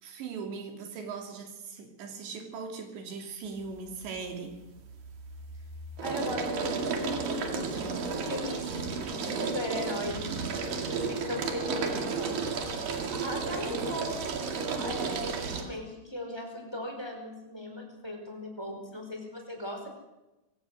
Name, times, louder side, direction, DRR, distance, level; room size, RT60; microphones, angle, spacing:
voice 1, 0.0-4.6, right 5 dB, 90° right, 4 dB, 5.1 m, -39 dB
sound 1, 3.6-4.1 4.5-15.6, right 4 dB, 60° right, 3.6 m, -33 dB
voice 2, 6.0-7.8 8.2-8.9 9.2-12.6 13.1-19.9, left 1 dB, 5° left, 3 dB, 4.2 m, -38 dB
23.5 x 17.0 x 6.5 m, 0.99 s
omnidirectional pair, 4.9 m